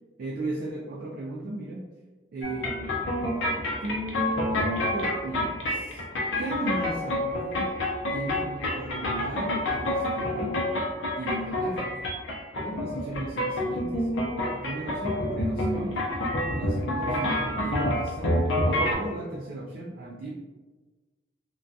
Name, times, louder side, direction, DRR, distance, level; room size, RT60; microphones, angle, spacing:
voice 1, 0.2-1.9 2.3-3.0 3.8-6.0 6.4-7.7 8.1-10.6 11.2-12.0 12.6-14.1 14.5-16.1 16.5-18.6 18.9-20.3, right 1 dB, 50° right, -3 dB, 0.3 m, -35 dB
sound 1, 2.4-18.9, left 1 dB, 90° left, 0.6 m, -28 dB
2.3 x 2.2 x 2.6 m, 1.3 s
head